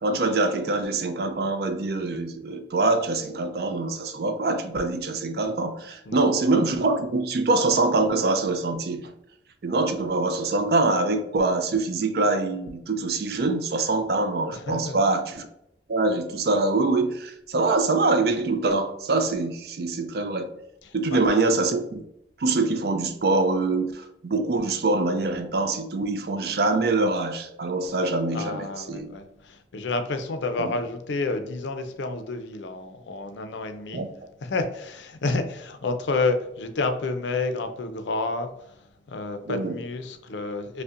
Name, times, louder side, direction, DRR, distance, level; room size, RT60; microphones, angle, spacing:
voice 1, 0.0-9.1 9.6-15.5 15.9-20.5 20.9-22.0 22.4-29.1 30.6-30.8 33.9-34.1 39.5-39.7, right 3 dB, 55° right, 7 dB, 0.4 m, -24 dB
voice 2, 14.5-15.0 20.8-21.2 28.3-34.0 34.4-38.8 39.1-40.8, left 3 dB, 80° left, 8 dB, 0.5 m, -30 dB
5.1 x 2.1 x 2.4 m, 0.79 s
head